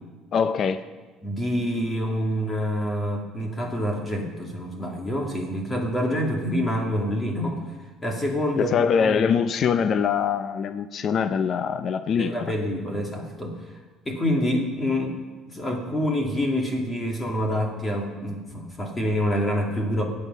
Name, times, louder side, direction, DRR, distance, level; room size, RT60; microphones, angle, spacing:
voice 1, 0.3-0.8 8.6-12.3, left 7 dB, 35° left, 10 dB, 0.5 m, -23 dB
voice 2, 1.2-7.6 8.0-9.1 12.2-13.5 14.1-15.1 15.5-20.0, equal, 15° left, 1 dB, 2.4 m, -26 dB
21.5 x 8.6 x 5.5 m, 1.3 s
cardioid pair, 165°, 0 cm